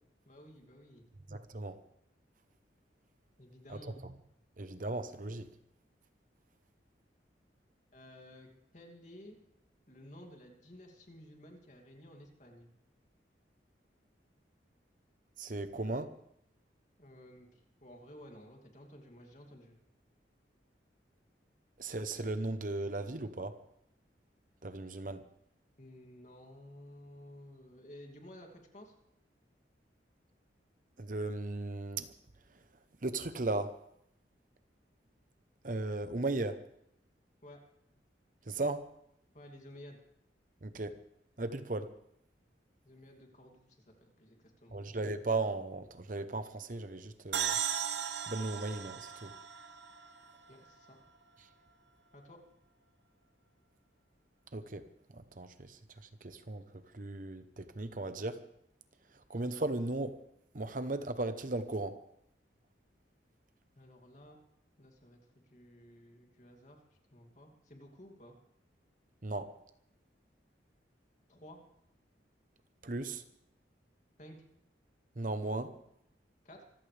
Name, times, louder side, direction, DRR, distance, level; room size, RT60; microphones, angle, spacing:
voice 1, 0.3-1.0 3.4-4.0 7.9-9.4 9.9-12.7 17.0-19.8 25.8-28.9 37.4-37.6 39.3-40.0 42.8-44.8 50.5-51.0 52.1-52.4 63.8-64.4 64.8-66.8 67.1-68.3 71.3-71.6 74.2-74.4 76.4-76.6, left 1 dB, 40° left, 3 dB, 2.7 m, -54 dB
voice 2, 1.3-1.8 4.6-5.5 15.4-16.1 21.8-23.5 24.6-25.2 31.0-32.1 33.0-33.7 35.6-36.6 38.5-38.8 40.6-40.9 41.4-41.9 44.7-47.6 48.3-49.3 54.5-54.9 55.1-55.8 56.2-56.6 56.9-58.4 59.3-60.2 60.5-62.0 69.2-69.5 72.8-73.2 75.2-75.7, right 2 dB, 45° right, 10 dB, 0.9 m, -36 dB
sound 1, 47.3-50.9, right 9 dB, 75° right, 1.1 m, -37 dB
25.5 x 15.0 x 3.4 m, 0.74 s
head